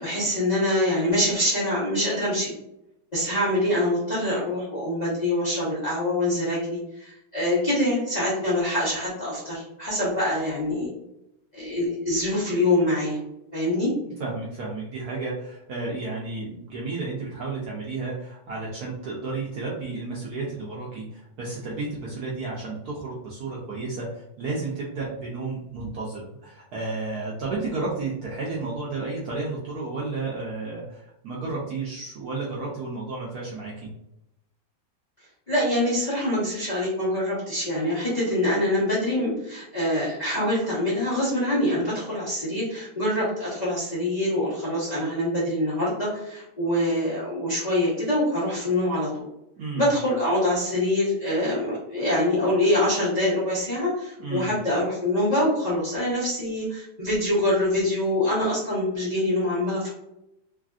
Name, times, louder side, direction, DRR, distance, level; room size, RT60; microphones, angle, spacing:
voice 1, 0.0-2.5 3.1-10.9 11.5-13.2 13.5-13.9 35.5-49.1 49.8-59.9, left 1 dB, 30° left, -9 dB, 0.8 m, -25 dB
voice 2, 14.2-33.9 49.6-49.9 54.2-54.5, right 3 dB, 70° right, -4 dB, 0.9 m, -32 dB
3.3 x 2.5 x 2.3 m, 0.84 s
omnidirectional pair, 2.1 m